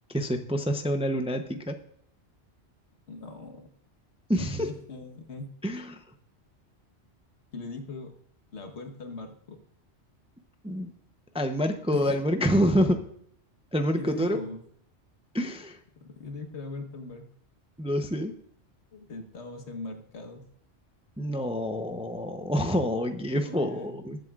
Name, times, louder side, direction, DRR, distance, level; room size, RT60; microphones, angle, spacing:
voice 1, 0.1-1.7 4.3-4.7 5.6-6.0 10.6-10.9 11.3-13.0 13.7-14.4 15.3-15.8 17.8-18.3 21.2-24.2, equal, 5° right, 6 dB, 0.6 m, -27 dB
voice 2, 3.1-3.7 4.4-5.5 7.5-8.2 8.5-9.6 11.9-12.1 14.0-14.6 16.0-17.2 18.9-20.4 23.4-24.0, left 3 dB, 70° left, 5 dB, 1.5 m, -40 dB
21.0 x 7.8 x 2.4 m, 0.65 s
omnidirectional pair, 1.2 m